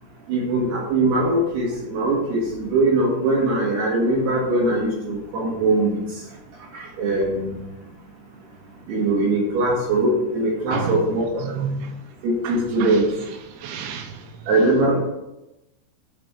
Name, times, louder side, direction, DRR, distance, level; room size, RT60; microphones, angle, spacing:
voice 1, 0.3-6.2 6.7-7.5 8.9-11.6 12.2-13.1 14.5-15.0, right 2 dB, 65° right, 3.6 m, -21 dB
voice 2, 11.4-12.0 12.4-13.0 13.5-14.4, right 6 dB, 80° right, 3.1 m, -31 dB
12.0 x 4.1 x 5.0 m
omnidirectional pair, 5.4 m